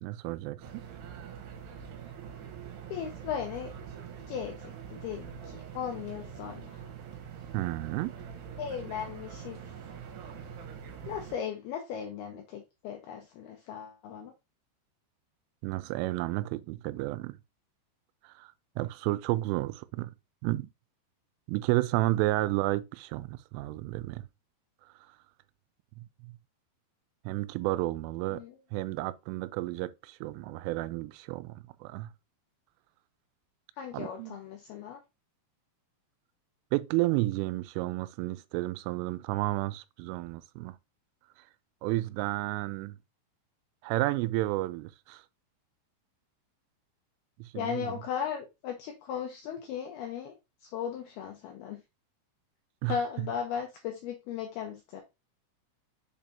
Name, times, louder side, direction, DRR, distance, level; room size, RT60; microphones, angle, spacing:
voice 1, 0.0-0.8 7.5-8.1 15.6-17.4 18.4-20.1 20.4-20.7 21.5-24.2 26.0-26.3 27.3-28.4 28.7-32.1 33.9-34.4 36.7-40.8 41.8-43.0 43.8-45.2 47.4-48.0 52.8-53.3, right 18 dB, 90° right, 3.1 m, -32 dB
sound 1, 0.6-11.4, right 8 dB, 65° right, 3.2 m, -44 dB
voice 2, 2.9-3.7 4.3-6.8 8.6-9.6 11.1-14.3 28.3-28.5 33.8-35.0 47.5-50.3 50.7-51.8 52.9-55.0, left 8 dB, 80° left, 2.2 m, -37 dB
7.1 x 5.2 x 2.7 m
omnidirectional pair, 5.6 m